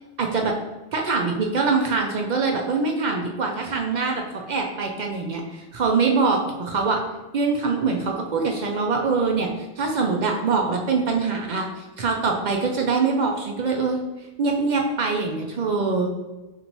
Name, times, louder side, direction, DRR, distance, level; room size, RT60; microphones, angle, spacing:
voice 1, 0.2-0.5 0.9-7.0 7.3-14.0 14.4-16.1, right 4 dB, 55° right, 1 dB, 0.5 m, -24 dB
5.2 x 2.6 x 2.9 m, 1.1 s
omnidirectional pair, 1.1 m